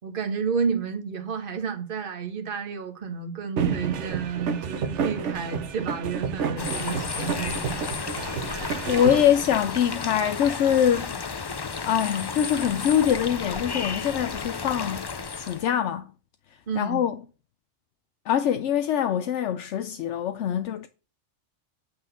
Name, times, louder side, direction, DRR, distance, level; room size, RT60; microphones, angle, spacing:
voice 1, 0.0-7.9 8.2-8.9 16.7-17.0, right 6 dB, 50° right, 1.4 m, -31 dB
sound 1, 3.6-9.2, right 6 dB, 75° right, 1.2 m, -30 dB
sound 2, 6.6-15.7, left 5 dB, 40° left, 0.3 m, -33 dB
voice 2, 8.4-11.1 11.6-16.1 16.8-17.2 18.3-20.9, left 9 dB, 80° left, 0.9 m, -24 dB
8.7 x 4.0 x 6.7 m
omnidirectional pair, 1.2 m